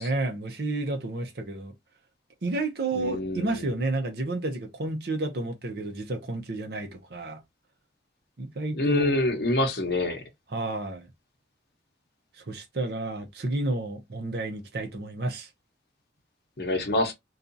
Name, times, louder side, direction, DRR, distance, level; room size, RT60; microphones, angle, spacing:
voice 1, 0.0-1.7 2.4-7.4 8.4-9.1 10.5-11.1 12.5-15.5, right 2 dB, 60° right, 0.7 m, -31 dB
voice 2, 2.9-3.7 8.7-10.2 16.6-17.1, left 2 dB, 65° left, 0.8 m, -26 dB
2.6 x 2.4 x 2.5 m
head